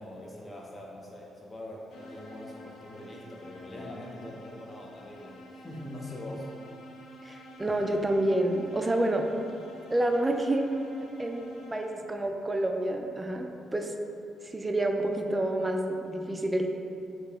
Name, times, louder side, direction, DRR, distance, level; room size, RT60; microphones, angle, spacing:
voice 1, 0.0-6.5, left 1 dB, 25° left, -2 dB, 0.6 m, -43 dB
sound 1, 1.9-12.3, equal, 70° left, 0.4 m, -49 dB
voice 2, 7.2-9.3 9.9-10.7 11.2-13.9 14.5-16.7, right 1 dB, 20° right, 4 dB, 0.3 m, -28 dB
3.0 x 2.8 x 3.5 m, 2.7 s
cardioid pair, 90°, 0 cm